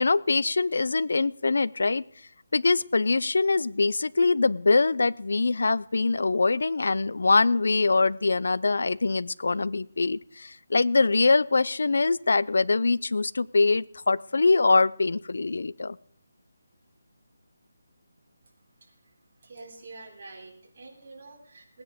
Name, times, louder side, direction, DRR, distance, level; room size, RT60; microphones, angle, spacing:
voice 1, 0.0-2.0 2.5-16.0, left 3 dB, 70° left, 21 dB, 0.5 m, -23 dB
voice 2, 18.8-19.1 19.4-21.8, right 3 dB, 45° right, 0 dB, 3.5 m, -47 dB
18.5 x 9.7 x 5.1 m, 0.64 s
hypercardioid pair, 170°, 0 cm